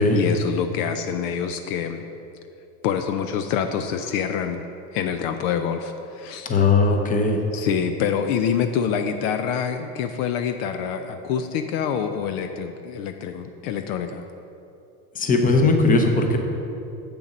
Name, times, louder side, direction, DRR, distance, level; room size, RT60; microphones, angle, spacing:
voice 1, 0.1-2.1 2.8-4.6 4.9-6.5 7.5-14.3, left 7 dB, 60° left, 8 dB, 0.6 m, -26 dB
voice 2, 6.4-7.4 15.1-16.4, left 3 dB, 20° left, 4 dB, 0.8 m, -18 dB
7.6 x 6.8 x 5.2 m, 2.8 s
supercardioid pair, 120°, 45 cm